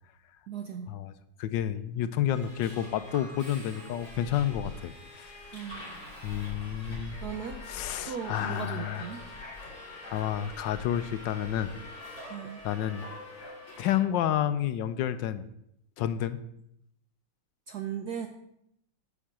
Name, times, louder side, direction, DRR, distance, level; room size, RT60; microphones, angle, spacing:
voice 1, 0.5-0.9 5.5-5.9 7.2-7.6 8.1-9.2 12.3-12.6 17.7-18.3, right 8 dB, 65° right, 6 dB, 1.0 m, -37 dB
voice 2, 1.4-5.3 6.2-7.2 7.7-9.0 10.1-11.7 12.6-13.0 13.8-15.4 16.0-16.4, left 10 dB, 75° left, 12 dB, 1.2 m, -30 dB
Subway metro underground, 2.3-13.9, left 2 dB, 25° left, 3.5 m, -44 dB
Raindrop / Drip, 3.1-4.5 5.7-7.1 8.3-9.7, equal, 80° right, 4.0 m, -51 dB
10.0 x 4.4 x 7.5 m, 0.77 s
omnidirectional pair, 2.2 m